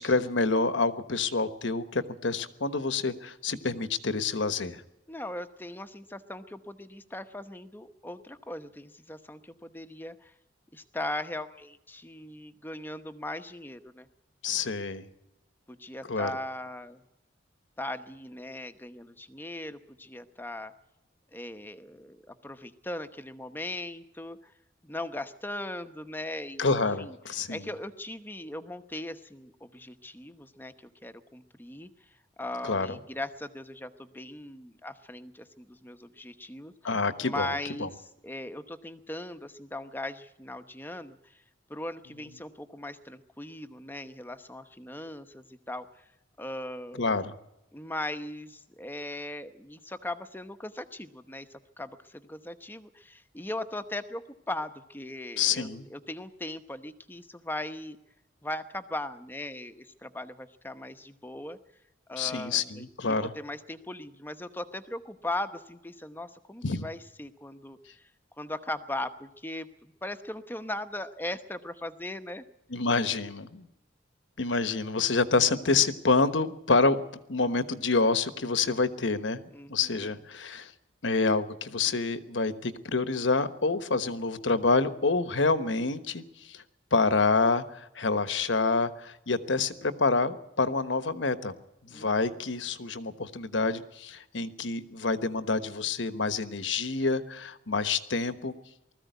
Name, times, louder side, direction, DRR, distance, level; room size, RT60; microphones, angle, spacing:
voice 1, 0.0-4.8 14.4-15.1 16.1-16.3 26.6-27.6 32.6-33.0 36.8-37.9 47.0-47.3 55.4-55.8 62.2-63.3 66.6-66.8 72.7-73.7 74.4-77.0 77.3-80.7 81.0-86.6 86.9-91.5 91.8-98.5, left 3 dB, 75° left, 11 dB, 1.2 m, -27 dB
voice 2, 5.1-10.3 10.7-14.1 15.7-17.0 17.8-20.7 21.3-24.5 24.8-26.7 27.0-27.2 27.5-30.7 31.0-31.9 32.4-41.4 41.7-46.0 46.4-47.2 47.7-51.5 51.8-58.0 58.4-61.6 62.1-68.0 68.4-72.4 79.5-80.2 91.9-92.4, left 1 dB, 10° left, 9 dB, 0.9 m, -39 dB
20.0 x 14.5 x 9.3 m, 0.92 s
head